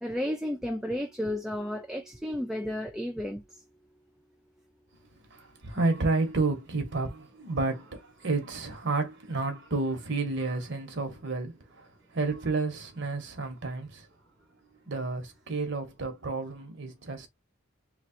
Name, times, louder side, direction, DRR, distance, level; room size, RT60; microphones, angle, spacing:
voice 1, 0.0-3.4, left 1 dB, ahead, 0.3 m, -32 dB
voice 2, 5.1-14.1 14.8-17.3, right 3 dB, 55° right, 1.1 m, -31 dB
3.1 x 2.3 x 4.3 m
head